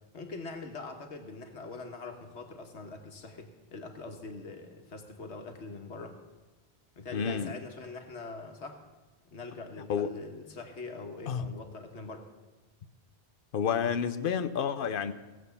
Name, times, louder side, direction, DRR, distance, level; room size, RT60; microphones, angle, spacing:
voice 1, 0.1-6.2 6.9-8.8 9.2-12.3, left 3 dB, 80° left, 1.6 m, -43 dB
voice 2, 7.1-7.5 9.9-10.2 11.3-11.5 13.5-15.1, left 7 dB, 60° left, 0.8 m, -30 dB
16.5 x 7.5 x 6.9 m
omnidirectional pair, 1.1 m